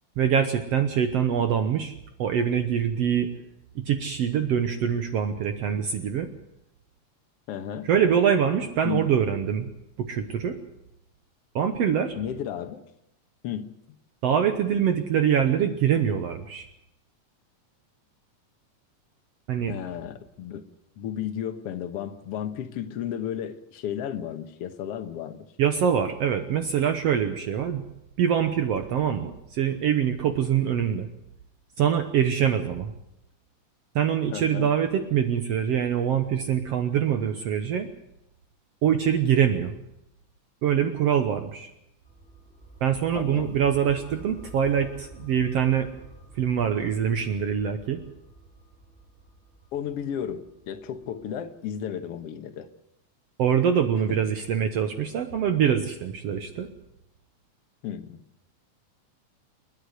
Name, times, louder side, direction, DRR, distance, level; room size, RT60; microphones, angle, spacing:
voice 1, 0.2-3.3 3.8-6.3 7.8-9.7 10.0-10.6 11.6-12.2 14.2-16.7 19.5-19.8 25.6-27.8 28.2-31.1 31.8-32.9 34.0-37.9 38.8-39.7 40.6-41.7 42.8-45.9 46.4-48.0 53.4-56.7, right 8 dB, 65° right, 8 dB, 1.8 m, -24 dB
voice 2, 7.5-7.9 8.8-9.1 12.2-12.8 13.4-13.7 19.7-20.6 21.0-25.5 34.3-34.7 43.2-43.5 49.7-52.7 54.1-54.2 57.8-58.2, left 9 dB, 60° left, 8 dB, 1.9 m, -33 dB
sound 1, 42.0-52.0, right 3 dB, ahead, 4.2 m, -49 dB
29.0 x 10.0 x 9.4 m, 0.85 s
omnidirectional pair, 3.5 m